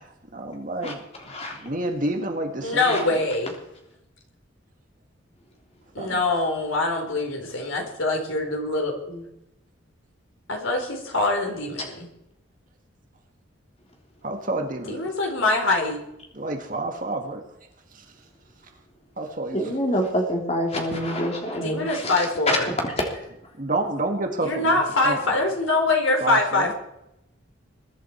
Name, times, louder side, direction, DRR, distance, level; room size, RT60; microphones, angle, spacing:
voice 1, 0.3-1.0 1.6-3.2 6.0-6.2 14.2-15.1 16.3-17.4 17.9-18.0 19.2-19.7 23.6-25.2 26.2-26.7, right 2 dB, 40° right, 4 dB, 1.8 m, -29 dB
voice 2, 1.2-1.6 2.8-3.0 19.5-23.2, equal, 30° left, 1 dB, 3.3 m, -26 dB
voice 3, 2.6-3.5 5.9-9.3 10.5-12.1 14.9-16.0 21.5-22.7 24.4-26.7, left 2 dB, 75° left, 2 dB, 4.3 m, -24 dB
22.0 x 11.0 x 4.6 m, 0.84 s
head